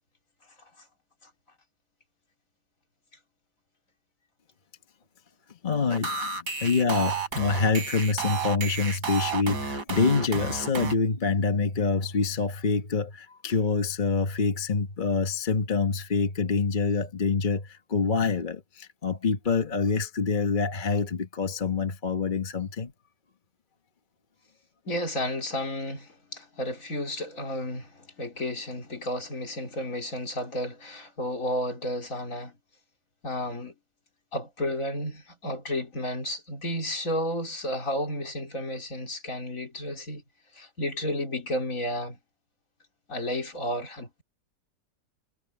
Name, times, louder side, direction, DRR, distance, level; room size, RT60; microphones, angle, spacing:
voice 1, 5.6-22.9, left 4 dB, 30° left, 1.2 m, -26 dB
sound 1, 5.9-10.9, right 5 dB, 75° right, 4.2 m, -32 dB
voice 2, 24.9-32.6 33.2-33.7 34.3-40.2 40.5-42.2 43.1-44.2, left 1 dB, 50° left, 4.4 m, -32 dB
omnidirectional pair, 1.8 m